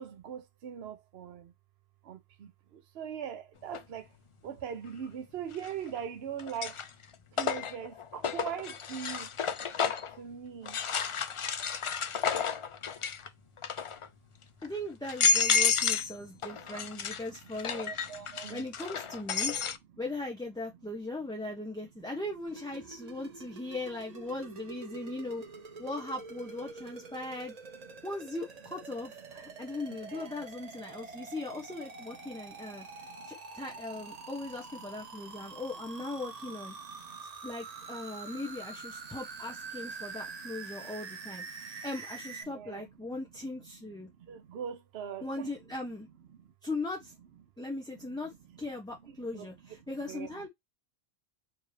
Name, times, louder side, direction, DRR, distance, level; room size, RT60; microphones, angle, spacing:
voice 1, 0.0-1.5 2.0-4.1 4.4-6.8 7.3-9.3 10.2-10.8 15.7-16.8 17.6-18.7 24.9-25.0 27.8-28.1 29.5-30.4 31.0-31.3 32.3-33.3 33.9-34.3 35.3-35.6 36.8-37.2 40.1-41.8 42.4-42.9 43.6-43.7 44.2-45.5 46.4-46.5 49.0-50.5, right 8 dB, 75° right, 1.0 m, -43 dB
sound 1, 3.7-3.8 5.5-6.0 6.4-10.2 10.7-13.3 13.6-14.1 14.6-14.7 15.0-16.1 16.4-19.8, left 6 dB, 55° left, 0.3 m, -31 dB
voice 2, 14.6-17.9 18.5-19.5 20.0-25.4 25.8-27.5 28.0-36.7 37.4-41.4 41.8-44.1 45.2-46.1 46.6-47.1 47.6-48.3 48.6-50.5, left 2 dB, 5° left, 0.7 m, -39 dB
sound 2, 22.5-42.4, right 4 dB, 40° right, 0.9 m, -46 dB
4.7 x 2.7 x 3.2 m
omnidirectional pair, 1.1 m